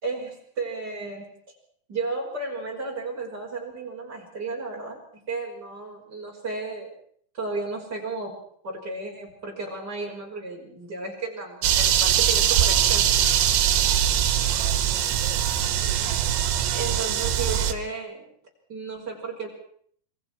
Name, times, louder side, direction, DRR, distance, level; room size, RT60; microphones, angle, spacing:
voice 1, 0.0-1.3 1.9-6.9 7.3-8.4 8.6-13.2 16.7-18.2 18.7-19.5, right 3 dB, 20° right, -1 dB, 5.8 m, -33 dB
sound 1, 11.6-17.7, right 10 dB, 80° right, 3.7 m, -22 dB
27.5 x 24.5 x 4.6 m, 0.62 s
omnidirectional pair, 5.2 m